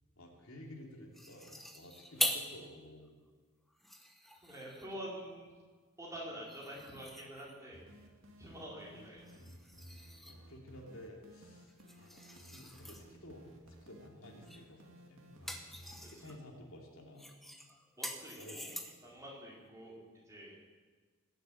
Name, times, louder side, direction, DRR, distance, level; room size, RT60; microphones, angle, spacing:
voice 1, 0.2-3.1 8.9-9.1 9.8-9.9 10.3-13.5 13.8-15.6 16.0-17.3 18.3-18.6 19.0-19.2, left 1 dB, 75° left, -1 dB, 3.2 m, -53 dB
sound 1, 1.1-2.6 3.1-3.2 3.7-5.0 6.5-7.7 9.3-10.5 11.7-13.0 14.5-14.7 15.1-16.4 17.2-19.1, equal, ahead, 1.1 m, -42 dB
voice 2, 4.4-5.5 6.0-7.8 8.4-9.5 9.9-10.0 16.1-16.3 18.0-18.7 19.0-19.9 20.3-20.5, equal, 15° right, -4 dB, 4.2 m, -47 dB
sound 2, 7.7-16.4, equal, 65° right, 2.3 m, -57 dB
20.0 x 8.1 x 8.7 m, 1.4 s
head